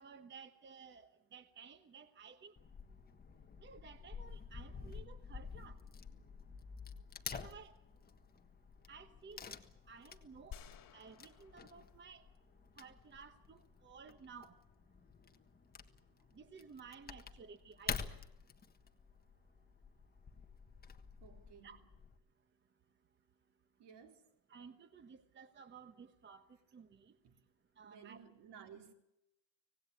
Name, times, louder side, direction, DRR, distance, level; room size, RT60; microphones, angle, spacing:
voice 1, 0.0-2.5 3.6-5.8 7.3-7.7 8.9-9.6 9.9-10.6 10.9-12.2 12.8-14.6 16.3-18.1 21.6-21.8 24.5-26.4 26.7-27.1 27.8-28.2, right 5 dB, 20° right, 1.0 m, -55 dB
Wood / Tearing, 2.6-22.2, left 5 dB, 20° left, 1.5 m, -50 dB
sound 1, 10.5-12.8, left 10 dB, 40° left, 3.6 m, -56 dB
voice 2, 21.2-21.8 23.8-24.3 26.9-27.4 27.8-28.9, right 7 dB, 55° right, 3.9 m, -57 dB
25.5 x 18.5 x 8.5 m
cardioid pair, 140°, 50 cm